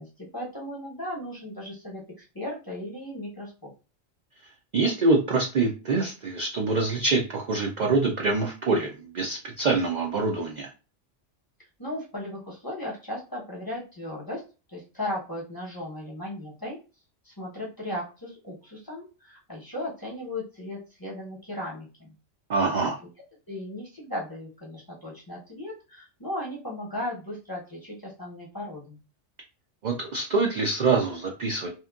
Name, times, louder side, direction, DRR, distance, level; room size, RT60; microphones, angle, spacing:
voice 1, 0.0-2.0 2.3-3.7 11.8-14.4 14.7-16.8 17.2-22.1 22.8-22.9 23.5-29.0, left 1 dB, 20° left, -4 dB, 0.8 m, -36 dB
voice 2, 4.7-10.7 22.5-23.0 29.8-31.7, right 3 dB, 65° right, 0 dB, 0.4 m, -25 dB
2.9 x 2.4 x 2.3 m, 0.32 s
omnidirectional pair, 1.3 m